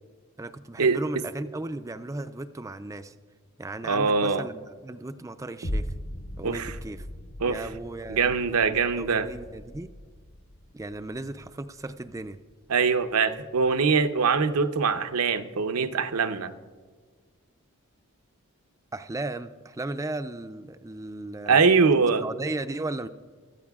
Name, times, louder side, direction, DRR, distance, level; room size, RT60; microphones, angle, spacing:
voice 1, 0.4-3.1 3.6-5.9 6.4-7.1 7.4-8.3 8.9-9.9 10.7-12.4 18.9-21.6 22.2-23.1, right 2 dB, 15° right, 10 dB, 0.3 m, -36 dB
voice 2, 3.8-4.4 6.4-6.7 7.4-7.6 8.1-9.3 12.7-16.5 21.5-22.2, right 5 dB, 85° right, 9 dB, 0.7 m, -23 dB
sound 1, 5.6-14.2 14.7-14.8, equal, 50° left, 0.8 m, -39 dB
24.5 x 14.0 x 2.4 m, 1.5 s
head